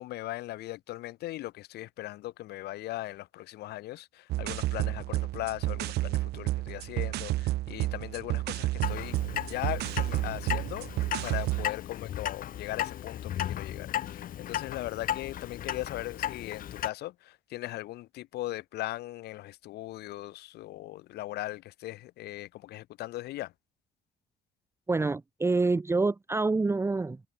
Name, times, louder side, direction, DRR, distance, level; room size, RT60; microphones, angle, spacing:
voice 1, 0.0-9.2 9.5-10.9 11.2-23.5, left 16 dB, 75° left, 1.1 m, -39 dB
sound 1, 4.3-11.7, right 17 dB, 75° right, 0.8 m, -31 dB
Clock, 8.8-16.9, left 11 dB, 55° left, 1.5 m, -35 dB
voice 2, 24.9-27.2, right 3 dB, 15° right, 1.0 m, -27 dB
cardioid pair, 110°, 17 cm